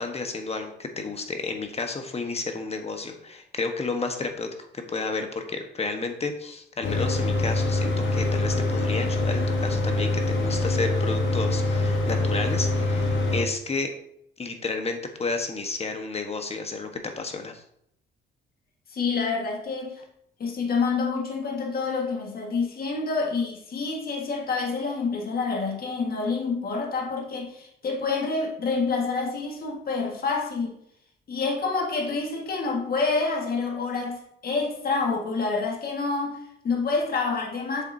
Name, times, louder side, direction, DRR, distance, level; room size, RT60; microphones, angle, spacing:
voice 1, 0.0-13.9 14.4-16.9 17.2-17.6, left 3 dB, 30° left, 1.3 m, -31 dB
Mechanical fan, 6.8-13.4, left 2 dB, 70° left, 1.9 m, -24 dB
voice 2, 18.9-20.0 20.4-30.7 31.3-37.9, left 4 dB, 50° left, 1.8 m, -27 dB
8.0 x 6.9 x 2.8 m
cardioid pair, 90°, 20 cm